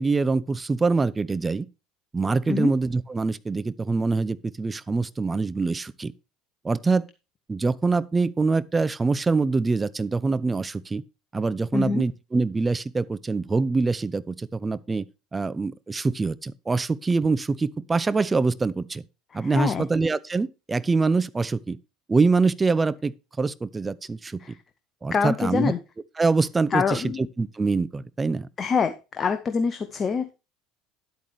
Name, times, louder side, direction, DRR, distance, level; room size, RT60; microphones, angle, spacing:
voice 1, 0.0-1.7 2.1-6.1 6.6-7.1 7.5-11.0 11.3-15.0 15.3-19.0 19.3-21.8 22.1-24.6 25.0-25.7 26.2-28.5, right 4 dB, 20° right, 0.6 m, -24 dB
voice 2, 11.7-12.0 19.3-19.8 24.4-24.6 25.1-25.8 26.7-27.3 28.6-30.3, left 5 dB, 30° left, 0.9 m, -25 dB
10.5 x 8.5 x 3.3 m
figure-of-eight pair, 65°, 0 cm